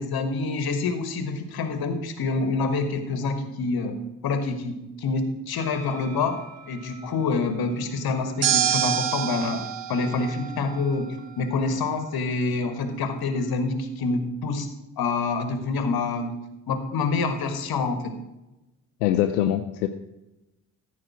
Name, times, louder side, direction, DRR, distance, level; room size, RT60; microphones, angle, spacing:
voice 1, 0.0-4.0 4.2-6.4 6.7-14.7 15.0-18.1, left 3 dB, 50° left, 8 dB, 1.5 m, -27 dB
sound 1, 5.6-6.5 8.4-11.0, right 10 dB, 70° right, 0.9 m, -28 dB
voice 2, 19.0-19.9, left 12 dB, 75° left, 7 dB, 0.6 m, -23 dB
14.0 x 4.8 x 6.0 m, 0.98 s
figure-of-eight pair, 40°, 48 cm